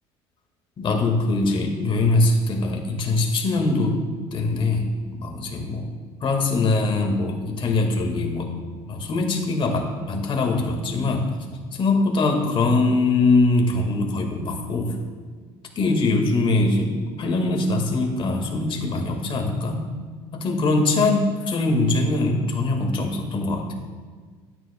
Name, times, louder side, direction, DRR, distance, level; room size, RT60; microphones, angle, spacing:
voice 1, 0.8-4.0 4.3-5.9 6.2-8.5 8.9-11.3 11.7-15.0 15.8-19.9 20.3-23.7, left 2 dB, 45° left, 3 dB, 1.7 m, -22 dB
12.5 x 9.3 x 2.2 m, 1.5 s
hypercardioid pair, 75°, 12 cm